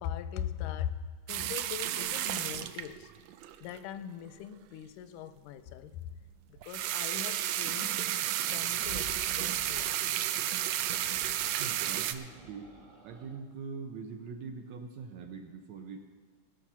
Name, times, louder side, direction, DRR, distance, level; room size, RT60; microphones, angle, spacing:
voice 1, 0.0-3.1 3.6-6.1 6.5-8.1 8.5-10.2, left 10 dB, 85° left, 2.1 m, -40 dB
sound 1, 1.3-3.8 6.6-12.1, right 12 dB, 85° right, 1.5 m, -32 dB
sound 2, 8.7-9.9 10.8-13.4, equal, 45° right, 0.8 m, -51 dB
voice 2, 11.6-12.7 13.0-16.0, right 5 dB, 70° right, 1.8 m, -43 dB
19.0 x 6.5 x 6.0 m
omnidirectional pair, 3.6 m